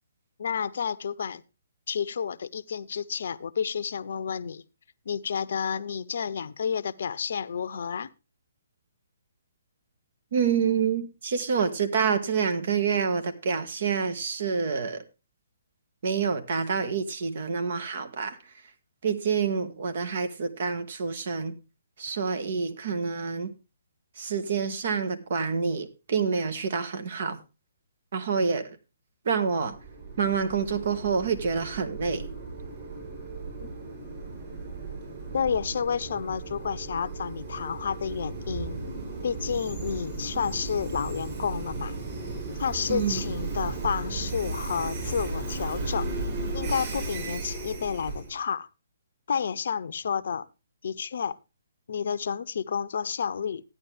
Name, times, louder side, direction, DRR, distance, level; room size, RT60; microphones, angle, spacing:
voice 1, 0.4-1.4 1.9-4.6 5.1-8.1 33.6-33.7 35.3-38.8 39.2-41.9 42.6-46.1 46.5-48.7 49.3-50.5 50.8-51.4 51.9-53.6, left 7 dB, 65° left, 0.7 m, -30 dB
voice 2, 10.3-15.0 16.0-18.4 19.0-21.6 22.0-23.5 24.2-27.4 28.1-28.8 29.2-29.8 30.2-32.2 42.9-43.2, right 6 dB, 55° right, 1.6 m, -27 dB
Train, 29.6-48.4, right 3 dB, 30° right, 7.6 m, -35 dB
14.0 x 9.7 x 3.5 m
hypercardioid pair, 140°, 0 cm